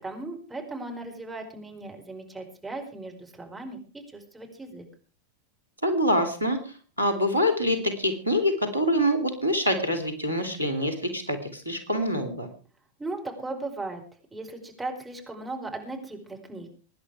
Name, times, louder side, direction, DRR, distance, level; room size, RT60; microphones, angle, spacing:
voice 1, 0.0-4.8 13.0-14.0 14.3-16.8, right 2 dB, 10° right, 2 dB, 4.9 m, -37 dB
voice 2, 5.8-12.5, equal, 85° right, 7 dB, 2.9 m, -25 dB
22.0 x 10.5 x 4.9 m, 0.37 s
figure-of-eight pair, 90°, 0 cm